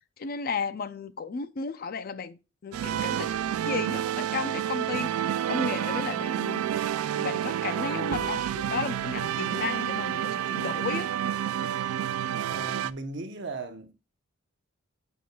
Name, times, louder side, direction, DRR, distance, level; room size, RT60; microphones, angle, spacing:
voice 1, 0.2-6.6 7.1-11.1, left 5 dB, 45° left, 0.4 m, -34 dB
sound 1, 2.7-12.9, right 10 dB, 85° right, 0.3 m, -29 dB
voice 2, 12.5-13.9, right 3 dB, 55° right, 0.9 m, -37 dB
8.4 x 5.5 x 2.2 m
head